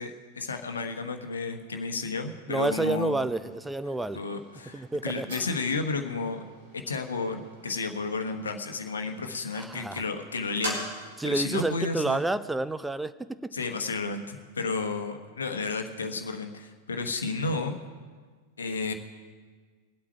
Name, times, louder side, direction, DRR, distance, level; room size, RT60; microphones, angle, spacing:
voice 1, 0.0-3.2 4.1-6.4 6.7-12.2 13.5-17.8 18.6-18.9, left 4 dB, 70° left, 6 dB, 1.2 m, -32 dB
voice 2, 2.5-4.2 4.7-5.4 9.5-10.0 11.2-13.1 13.4-13.5, right 2 dB, 5° right, 13 dB, 0.5 m, -29 dB
sound 1, 2.9-11.2, right 1 dB, 65° right, 4.9 m, -44 dB
23.5 x 8.4 x 4.6 m, 1.5 s
figure-of-eight pair, 90°, 0 cm